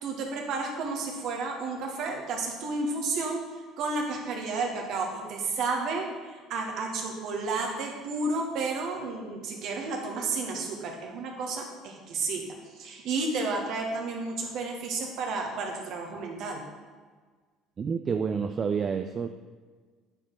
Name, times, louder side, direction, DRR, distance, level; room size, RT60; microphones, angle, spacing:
voice 1, 0.0-3.4 3.8-12.4 12.8-16.6, right 3 dB, 55° right, 1 dB, 1.7 m, -32 dB
voice 2, 17.8-19.3, right 6 dB, 35° right, 7 dB, 0.4 m, -29 dB
8.9 x 5.0 x 5.8 m, 1.5 s
figure-of-eight pair, 60°, 0 cm